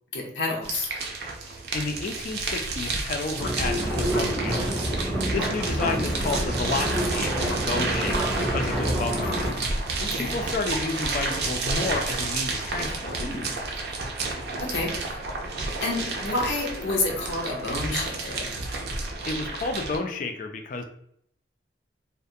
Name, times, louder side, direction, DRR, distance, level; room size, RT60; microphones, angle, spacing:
voice 1, 0.1-0.9 9.2-9.7 10.0-10.4 13.2-13.6 14.6-15.3 15.6-18.5, left 2 dB, 85° left, -2 dB, 0.6 m, -30 dB
sound 1, 0.6-20.0, right 3 dB, 60° right, 0.4 m, -31 dB
voice 2, 1.4-4.7 5.3-9.4 10.2-13.2 19.3-20.8, left 3 dB, 45° left, 5 dB, 0.3 m, -31 dB
sound 2, 3.4-9.5, equal, 5° right, 0.6 m, -28 dB
2.3 x 2.1 x 2.6 m, 0.68 s
head